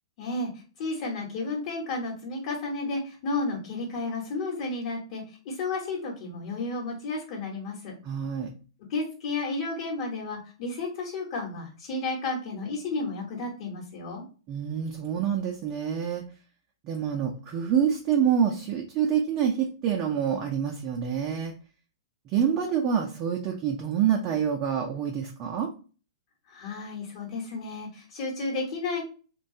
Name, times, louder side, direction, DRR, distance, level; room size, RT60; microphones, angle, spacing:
voice 1, 0.2-0.5 0.8-8.0 8.9-14.2 26.5-29.0, left 3 dB, 45° left, -2 dB, 1.0 m, -32 dB
voice 2, 8.0-8.5 14.5-16.2 16.8-21.5 22.3-25.7, right 8 dB, 35° right, 1 dB, 0.5 m, -27 dB
3.0 x 2.2 x 2.6 m, 0.36 s
figure-of-eight pair, 115°, 2 cm